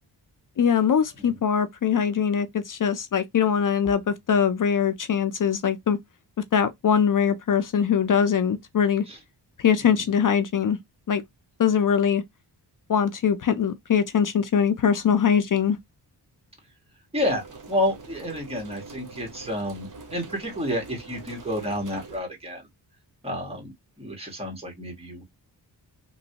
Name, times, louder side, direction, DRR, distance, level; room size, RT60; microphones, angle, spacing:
voice 1, 0.6-6.0 6.5-9.0 9.6-10.8 11.1-11.2 11.6-12.2 12.9-15.8, left 7 dB, 50° left, 0.5 m, -22 dB
voice 2, 17.1-22.7 23.2-25.2, equal, 15° right, 1.5 m, -30 dB
sound 1, 17.2-22.2, right 3 dB, 45° right, 0.9 m, -44 dB
3.0 x 2.6 x 2.8 m
wide cardioid pair, 110°, 42 cm